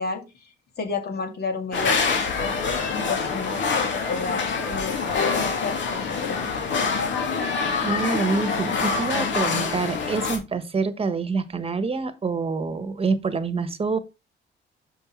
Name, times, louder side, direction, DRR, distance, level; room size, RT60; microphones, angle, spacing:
voice 1, 0.0-2.8 3.1-7.0, left 4 dB, 55° left, 2.4 m, -32 dB
sound 1, 1.7-10.4, left 5 dB, 70° left, 2.5 m, -25 dB
voice 2, 7.8-14.0, right 4 dB, 30° right, 1.3 m, -26 dB
6.7 x 5.5 x 4.5 m
cardioid pair, 90°, 20 cm